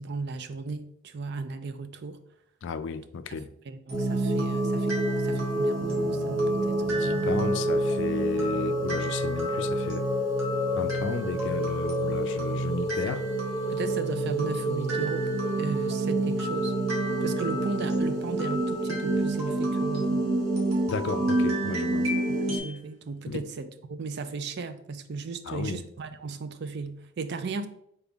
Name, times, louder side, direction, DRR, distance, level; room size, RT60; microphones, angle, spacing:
voice 1, 0.0-2.2 3.3-7.3 13.1-13.2 13.7-16.7 17.2-20.3 22.3-27.7, right 4 dB, 55° right, 0.4 m, -36 dB
voice 2, 2.6-3.5 6.9-10.1 10.7-13.2 20.9-22.1 23.3-23.4 25.5-25.8, left 5 dB, 60° left, 0.3 m, -33 dB
sound 1, 3.9-22.6, right 1 dB, 20° right, 0.9 m, -28 dB
sound 2, 3.9-22.8, left 1 dB, 85° right, 1.4 m, -39 dB
Bass guitar, 5.8-10.1, right 1 dB, 5° left, 0.9 m, -45 dB
5.2 x 4.2 x 2.4 m
head